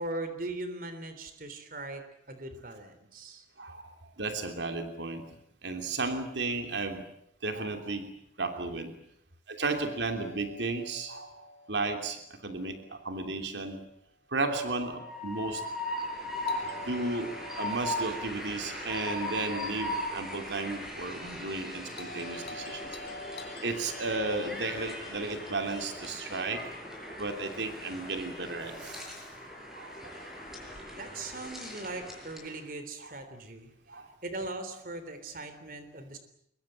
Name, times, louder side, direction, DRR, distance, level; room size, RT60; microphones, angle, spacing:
voice 1, 0.0-2.0 2.3-3.5 31.0-33.7 34.2-36.2, right 2 dB, 50° right, 9 dB, 3.5 m, -39 dB
voice 2, 3.6-5.2 5.6-7.1 7.4-8.1 8.4-8.9 9.5-11.3 11.7-13.8 14.3-15.6 16.9-22.9 23.6-26.6 27.2-29.0 29.7-30.0 33.9-34.1, right 3 dB, 85° right, 6 dB, 3.0 m, -34 dB
Doorbell, 9.6-13.6 16.5-20.7 21.9-26.4, left 3 dB, 65° left, 2.5 m, -49 dB
Train, 14.8-32.6, left 1 dB, ahead, 6.4 m, -39 dB
24.0 x 22.0 x 8.8 m, 0.73 s
head